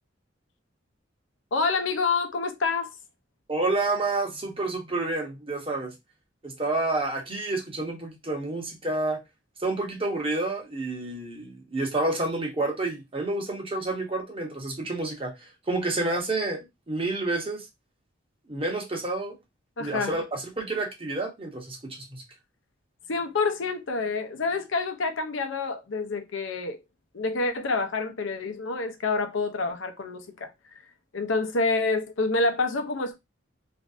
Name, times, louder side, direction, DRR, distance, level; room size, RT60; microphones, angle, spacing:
voice 1, 1.5-2.9 19.8-20.2 23.1-26.8 27.1-30.5 31.1-33.2, left 3 dB, 70° left, 0.6 m, -27 dB
voice 2, 3.5-5.9 6.4-9.2 9.6-17.6 18.5-19.4 19.8-22.2, right 2 dB, 30° right, 0.9 m, -29 dB
3.2 x 2.5 x 2.5 m
head